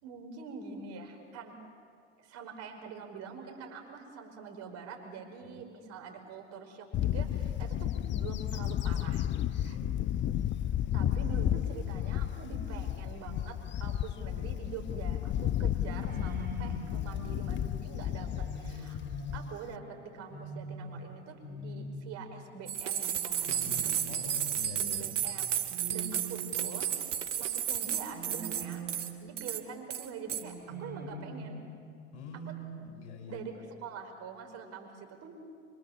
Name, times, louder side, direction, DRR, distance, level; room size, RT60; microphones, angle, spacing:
voice 1, 0.0-1.6 2.2-9.8 10.9-19.0 19.3-24.0 24.8-25.6 25.9-26.9 27.4-31.6 32.4-32.5 33.3-35.4, right 5 dB, 45° right, 3 dB, 5.4 m, -45 dB
Bird / Wind, 6.9-19.7, left 11 dB, 30° left, 0.7 m, -32 dB
voice 2, 9.6-10.6 19.2-19.4 23.5-25.0 32.1-33.4, left 2 dB, 70° left, 4 dB, 5.7 m, -45 dB
sound 1, 15.8-27.4 28.1-29.5 30.4-32.0, right 1 dB, 25° right, 5.9 m, -44 dB
sound 2, 22.7-29.1 29.4-29.6 29.9-30.4, right 9 dB, 80° right, 1.8 m, -33 dB
26.5 x 24.5 x 7.4 m, 2.3 s
hypercardioid pair, 90°, 36 cm